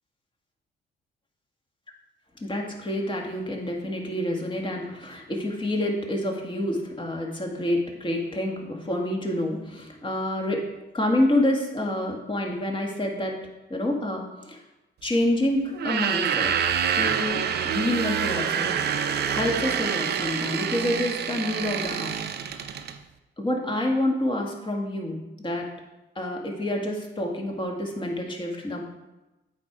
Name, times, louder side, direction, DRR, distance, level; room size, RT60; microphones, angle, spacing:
voice 1, 2.4-10.7 10.9-13.4 13.7-14.6 15.0-16.7 16.9-19.0 19.3-22.2 22.5-22.7 23.4-25.7 26.1-28.8, left 1 dB, 25° left, 1 dB, 1.7 m, -28 dB
sound 1, 15.7-23.0, right 8 dB, 55° right, 0.6 m, -27 dB
8.3 x 4.6 x 5.0 m, 1.0 s
cardioid pair, 90°, 20 cm